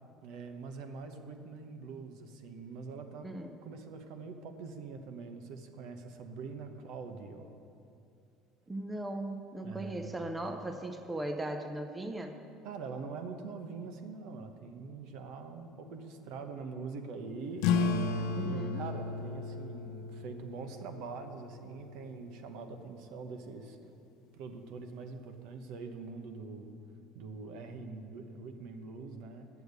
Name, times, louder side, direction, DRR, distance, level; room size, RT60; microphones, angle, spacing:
voice 1, 0.2-3.3 3.6-7.6 9.6-10.2 12.6-23.8 24.3-26.8 27.1-29.5, right 4 dB, 65° right, 6 dB, 1.0 m, -44 dB
voice 2, 3.2-3.6 8.7-12.4 18.4-18.8, right 1 dB, 10° right, 5 dB, 0.6 m, -38 dB
sound 1, 17.6-22.7, left 5 dB, 75° left, 0.5 m, -34 dB
10.0 x 7.1 x 8.1 m, 2.6 s
cardioid pair, 155°, 0 cm